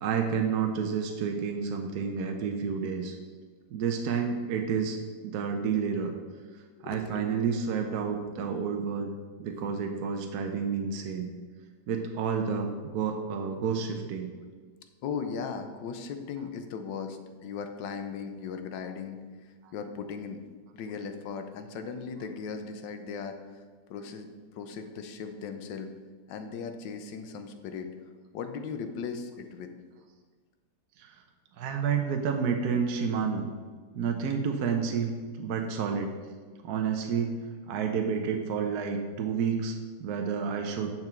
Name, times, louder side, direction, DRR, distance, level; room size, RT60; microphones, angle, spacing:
voice 1, 0.0-3.1 3.7-5.0 5.2-6.1 6.8-9.1 9.4-11.3 11.9-14.3 31.0-31.2 31.6-33.5 33.9-35.1 35.4-36.1 36.6-37.4 37.7-40.9, right 6 dB, 65° right, 3 dB, 1.2 m, -30 dB
voice 2, 6.8-7.2 8.1-8.2 15.0-20.4 20.7-23.6 23.9-24.3 24.5-25.9 26.3-27.9 28.3-29.7, left 6 dB, 90° left, 7 dB, 1.5 m, -38 dB
9.8 x 6.1 x 4.4 m, 1.5 s
omnidirectional pair, 1.9 m